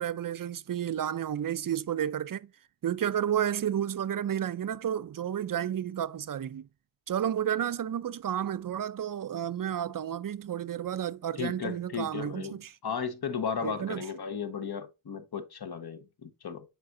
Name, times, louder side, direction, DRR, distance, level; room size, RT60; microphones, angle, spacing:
voice 1, 0.0-2.5 2.8-6.7 7.1-12.8 13.6-14.1, right 10 dB, 45° right, 0.5 m, -31 dB
voice 2, 11.4-16.7, left 6 dB, 50° left, 1.2 m, -35 dB
7.6 x 5.1 x 2.6 m
cardioid pair, 75°, 47 cm